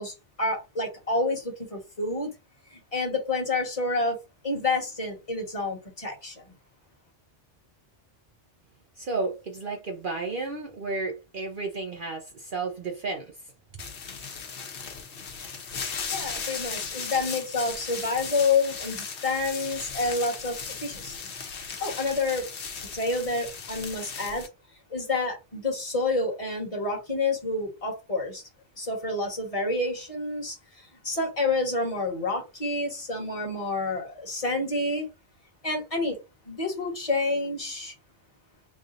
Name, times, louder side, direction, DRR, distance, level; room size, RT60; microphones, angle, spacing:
voice 1, 0.0-2.3 2.7-4.2 4.4-6.4 16.1-21.1 21.8-22.5 22.9-24.5 24.9-28.4 28.8-30.6 31.0-35.1 35.6-36.2 36.4-37.9, left 3 dB, 30° left, 1.5 m, -28 dB
voice 2, 9.0-13.4, right 3 dB, 50° right, 0.8 m, -32 dB
sound 1, 13.8-24.5, left 5 dB, 70° left, 1.1 m, -37 dB
3.3 x 2.5 x 3.8 m
omnidirectional pair, 1.2 m